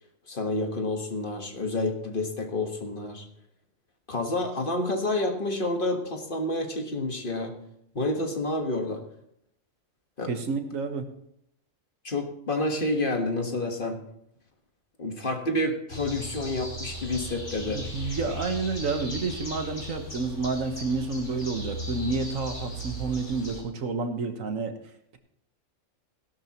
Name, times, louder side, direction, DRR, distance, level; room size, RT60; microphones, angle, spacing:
voice 1, 0.3-3.3 4.1-7.5 7.9-9.0 10.2-10.3 12.0-14.0 15.0-17.8, left 2 dB, 40° left, 3 dB, 1.7 m, -29 dB
voice 2, 10.3-11.0 17.6-24.7, right 4 dB, 90° right, 6 dB, 1.7 m, -30 dB
sound 1, 15.9-23.6, left 1 dB, 65° left, 3.7 m, -37 dB
17.0 x 11.5 x 3.0 m, 0.75 s
omnidirectional pair, 1.3 m